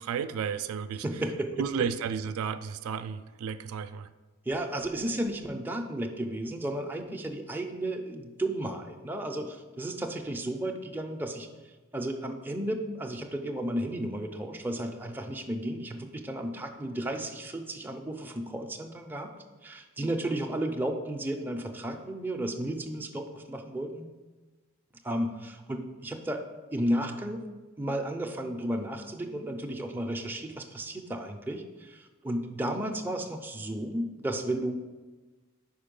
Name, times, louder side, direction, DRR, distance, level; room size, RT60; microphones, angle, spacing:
voice 1, 0.0-1.0 1.6-4.1, right 7 dB, 75° right, 0.3 m, -32 dB
voice 2, 1.0-1.9 4.5-11.5 11.9-19.3 19.6-24.1 25.0-26.4 26.7-27.4 27.8-34.7, right 1 dB, 10° right, 0.4 m, -33 dB
5.3 x 4.5 x 5.2 m
head